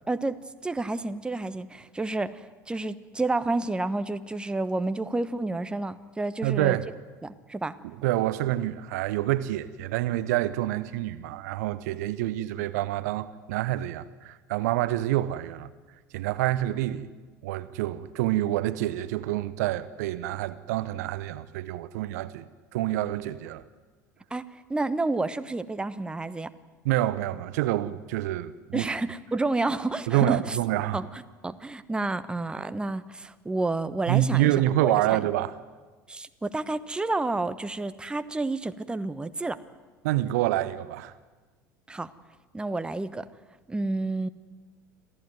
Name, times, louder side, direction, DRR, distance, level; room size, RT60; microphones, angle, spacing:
voice 1, 0.1-6.8 7.2-7.8 24.3-24.4 24.7-26.5 28.7-30.6 30.9-34.5 34.8-35.3 36.1-39.6 41.9-42.1 42.5-43.2 43.7-44.3, right 2 dB, 10° right, 1.0 m, -30 dB
voice 2, 6.4-6.8 8.0-15.7 16.1-17.1 17.4-23.6 26.8-28.9 30.1-31.0 34.1-35.5 40.0-41.1, right 14 dB, 60° right, 0.9 m, -27 dB
26.5 x 16.0 x 9.4 m
figure-of-eight pair, 70°, 10 cm